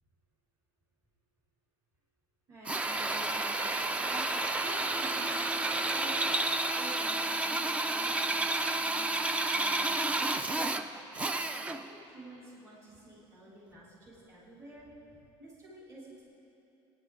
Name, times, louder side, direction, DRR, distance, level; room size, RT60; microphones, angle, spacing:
voice 1, 2.5-10.5 11.6-14.9 15.4-16.2, right 1 dB, 30° right, -7 dB, 3.6 m, -50 dB
Drill, 2.7-11.9, right 2 dB, 15° right, 0.4 m, -31 dB
25.0 x 10.0 x 3.8 m, 2.9 s
cardioid pair, 170°, 10 cm